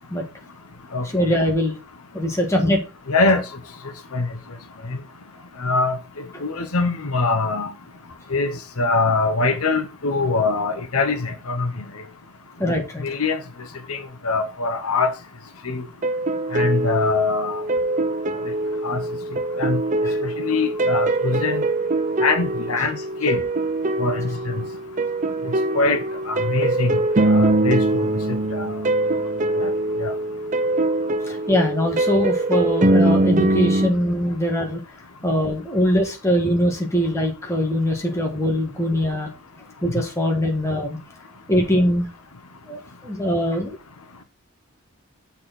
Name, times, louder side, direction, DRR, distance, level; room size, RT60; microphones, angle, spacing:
voice 1, 1.1-1.7 2.1-2.8 6.3-6.4 12.6-13.0 20.0-20.2 31.3-34.8 35.2-39.3 39.8-41.0 41.5-42.1 42.7-43.8, equal, 15° left, 1.7 m, -22 dB
voice 2, 3.1-3.4 4.1-4.3 4.9-5.0 5.6-7.7 8.3-11.7 13.0-13.4 13.9-15.1 15.6-15.8 16.5-17.6 18.8-19.0 19.6-19.8 20.2-21.6 22.2-23.4 24.0-24.6 25.4-26.0 26.3-27.0 27.3-28.1 28.5-28.8 29.6-29.7 30.0-30.1, left 3 dB, 75° left, 1.1 m, -23 dB
sound 1, 16.0-33.9, right 2 dB, 35° right, 0.6 m, -22 dB
6.5 x 4.3 x 5.7 m
head